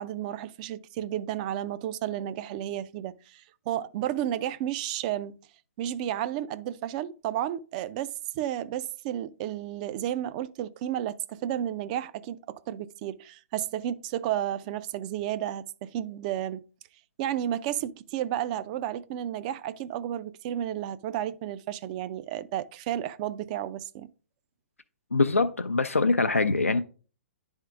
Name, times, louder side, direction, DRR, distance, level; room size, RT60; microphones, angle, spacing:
voice 1, 0.0-5.3 5.8-16.6 17.2-24.1, right 11 dB, 35° right, 0.4 m, -32 dB
voice 2, 25.1-26.8, left 3 dB, 85° left, 0.4 m, -23 dB
10.5 x 3.6 x 3.6 m
figure-of-eight pair, 120°, 7 cm